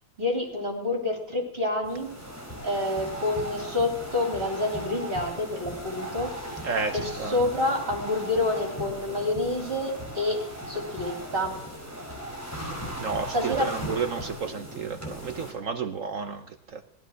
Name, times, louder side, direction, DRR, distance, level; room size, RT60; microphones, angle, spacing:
voice 1, 0.2-2.1 2.6-6.4 6.9-11.6 13.3-13.7, left 2 dB, 25° right, 3.5 m, -28 dB
sound 1, 1.8-15.5, equal, 5° left, 4.4 m, -38 dB
voice 2, 6.6-7.4 13.0-16.8, right 5 dB, 55° right, 0.9 m, -32 dB
17.0 x 13.0 x 6.3 m
omnidirectional pair, 2.2 m